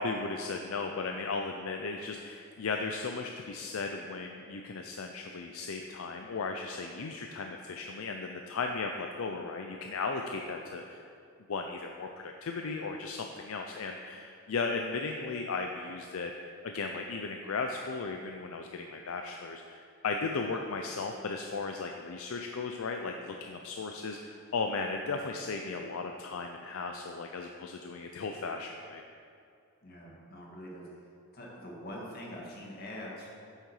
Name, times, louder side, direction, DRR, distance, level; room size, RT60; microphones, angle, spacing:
voice 1, 0.0-11.0 11.5-16.3 16.6-29.0, left 4 dB, 70° left, 3 dB, 0.5 m, -36 dB
voice 2, 29.8-30.9 31.3-33.4, equal, 45° left, -3 dB, 1.7 m, -44 dB
8.4 x 6.5 x 4.8 m, 2.4 s
head